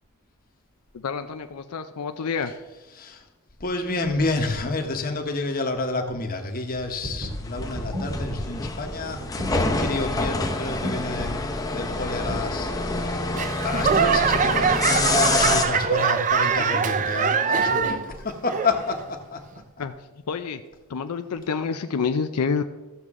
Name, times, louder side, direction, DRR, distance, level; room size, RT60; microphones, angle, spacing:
voice 1, 0.9-2.5 19.8-19.9 20.3-20.6 20.9-22.6, left 5 dB, 90° left, 8 dB, 0.5 m, -28 dB
voice 2, 2.9-3.2 3.6-11.4 11.7-13.3 13.6-19.4 19.8-19.9, left 3 dB, 40° left, 4 dB, 1.1 m, -29 dB
sound 1, 6.9-10.5 10.8-10.9 11.2-11.5 11.9-12.6, equal, 85° right, 3.2 m, -34 dB
sound 2, 7.3-15.6, left 2 dB, 15° left, 0.7 m, -27 dB
Laughter / Clapping / Crowd, 13.4-18.1 18.5-19.0 19.6-19.7, right 6 dB, 35° right, 0.4 m, -23 dB
14.0 x 6.6 x 3.6 m, 1.2 s
head